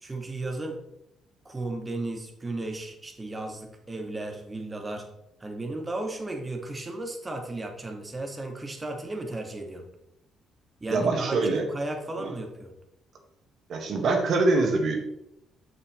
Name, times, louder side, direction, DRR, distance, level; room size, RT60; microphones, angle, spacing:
voice 1, 0.0-0.9 1.4-5.1 5.4-9.9 10.8-12.7, right 2 dB, 25° right, 3 dB, 2.0 m, -35 dB
voice 2, 10.9-11.6 13.7-15.0, right 3 dB, 60° right, 3 dB, 1.8 m, -24 dB
9.0 x 6.6 x 3.2 m, 0.83 s
hypercardioid pair, 45°, 0 cm